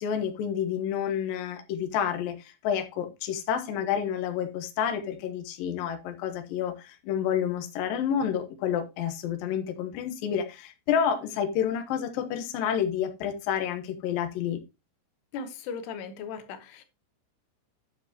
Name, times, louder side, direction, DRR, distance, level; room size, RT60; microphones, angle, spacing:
voice 1, 0.0-14.6, left 8 dB, 90° left, 2.0 m, -29 dB
voice 2, 15.3-16.8, left 5 dB, 75° left, 2.6 m, -37 dB
9.5 x 7.4 x 2.9 m
omnidirectional pair, 5.7 m